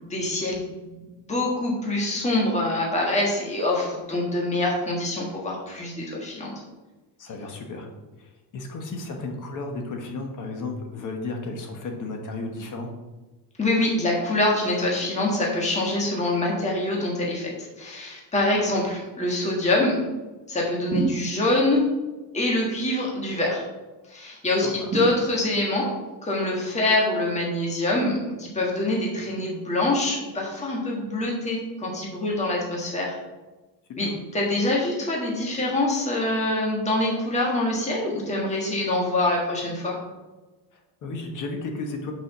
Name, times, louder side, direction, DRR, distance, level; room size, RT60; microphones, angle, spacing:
voice 1, 0.0-6.5 13.6-20.0 20.5-21.8 22.3-23.6 24.1-25.9 26.2-33.1 34.0-40.0, left 2 dB, 15° left, -3 dB, 1.6 m, -25 dB
voice 2, 7.2-7.9 8.2-12.9 24.6-24.9 34.0-34.1 40.7-42.1, left 3 dB, 45° left, 3 dB, 1.2 m, -34 dB
sound 1, 20.9-21.8 24.9-25.8, right 3 dB, 35° right, 0.9 m, -29 dB
5.9 x 4.9 x 5.9 m, 1.1 s
cardioid pair, 145°, 42 cm